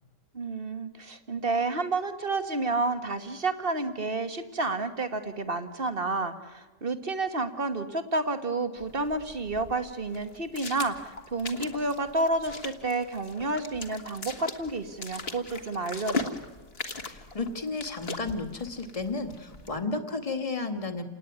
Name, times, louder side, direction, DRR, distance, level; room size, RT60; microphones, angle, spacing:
voice 1, 0.3-16.3, right 2 dB, 35° right, 9 dB, 1.6 m, -30 dB
sound 1, 8.8-19.8, left 3 dB, 35° left, 1.9 m, -39 dB
voice 2, 17.0-21.0, left 3 dB, 20° left, 7 dB, 1.9 m, -33 dB
29.0 x 19.0 x 9.5 m, 1.3 s
omnidirectional pair, 1.9 m